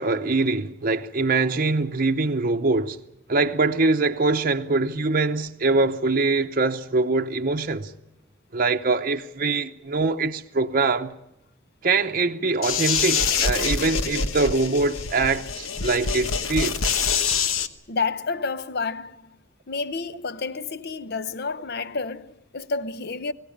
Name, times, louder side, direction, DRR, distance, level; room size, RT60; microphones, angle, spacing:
voice 1, 0.0-3.0 3.3-7.9 8.5-11.1 11.8-16.9, right 3 dB, 45° right, 0.8 m, -23 dB
sound 1, 12.6-17.7, left 6 dB, 90° left, 1.2 m, -25 dB
voice 2, 17.9-19.2 19.7-23.3, left 4 dB, 50° left, 0.8 m, -29 dB
22.5 x 17.5 x 8.6 m
head